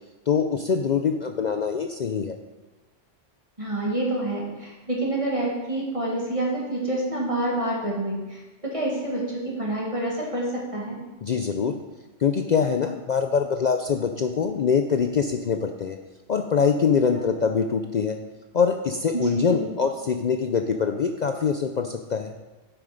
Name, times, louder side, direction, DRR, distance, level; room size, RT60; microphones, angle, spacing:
voice 1, 0.3-2.4 11.2-11.8 12.2-16.0 16.3-18.2 18.5-22.3, left 6 dB, 60° left, 6 dB, 0.4 m, -24 dB
voice 2, 3.6-11.0 17.2-17.3 19.1-19.7, right 1 dB, 25° right, -3 dB, 2.0 m, -28 dB
7.8 x 7.2 x 5.1 m, 1.2 s
omnidirectional pair, 1.3 m